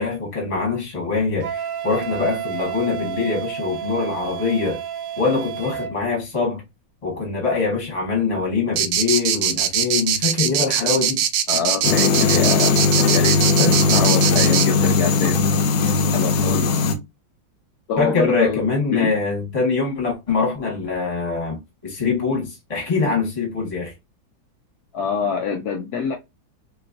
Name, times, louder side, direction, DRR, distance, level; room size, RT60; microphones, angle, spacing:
voice 1, 0.0-4.8 5.2-6.6 7.0-11.2 18.0-23.9, left 4 dB, 20° left, 1.2 m, -23 dB
Wind instrument woodwind instrument, 1.4-5.9, right 9 dB, 65° right, 0.9 m, -31 dB
sound 1, 8.8-14.7, right 10 dB, 85° right, 1.4 m, -21 dB
voice 2, 11.5-15.4 16.1-16.7 17.9-18.6 18.9-19.1 24.9-26.2, left 6 dB, 70° left, 0.9 m, -25 dB
sound 2, 11.8-16.9, left 4 dB, 85° left, 1.4 m, -18 dB
3.2 x 3.0 x 2.4 m
omnidirectional pair, 2.1 m